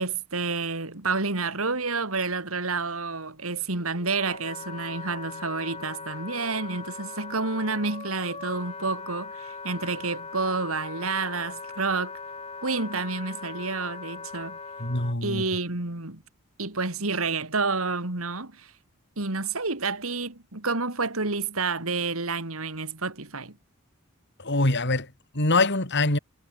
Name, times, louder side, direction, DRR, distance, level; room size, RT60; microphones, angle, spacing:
voice 1, 0.0-12.1 12.6-14.6 15.2-16.2 16.6-18.7 19.2-23.6, right 4 dB, 80° right, 3.2 m, -29 dB
Wind instrument woodwind instrument, 3.6-15.2, left 4 dB, 30° left, 6.3 m, -40 dB
voice 2, 14.8-15.4 24.4-26.2, left 2 dB, 55° left, 4.2 m, -24 dB
head